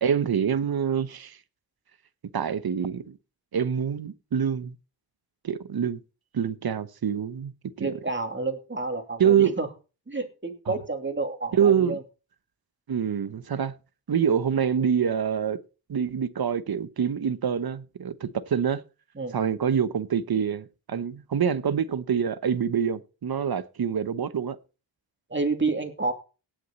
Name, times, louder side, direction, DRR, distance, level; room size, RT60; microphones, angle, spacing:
voice 1, 0.0-1.4 2.3-3.2 3.5-4.7 5.4-6.0 6.3-7.5 7.8-7.9 9.2-9.6 10.7-10.8 11.5-12.0 12.9-13.7 14.1-15.6 15.9-18.8 19.3-24.6, right 8 dB, 55° right, 1.0 m, -25 dB
voice 2, 7.8-9.7 10.1-12.0 19.2-19.4 25.3-26.1, right 3 dB, 25° right, 2.8 m, -29 dB
18.0 x 6.5 x 4.2 m
cardioid pair, 85°, 45 cm